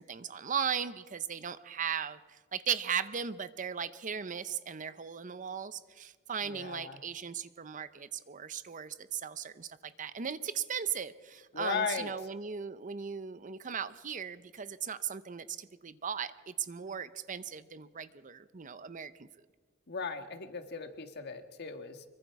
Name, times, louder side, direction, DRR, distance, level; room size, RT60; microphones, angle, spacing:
voice 1, 0.0-19.3, right 7 dB, 40° right, 14 dB, 0.7 m, -37 dB
voice 2, 6.4-7.0 11.5-12.1 19.9-22.0, left 5 dB, 55° left, 8 dB, 1.6 m, -37 dB
25.0 x 23.0 x 4.8 m, 1.4 s
head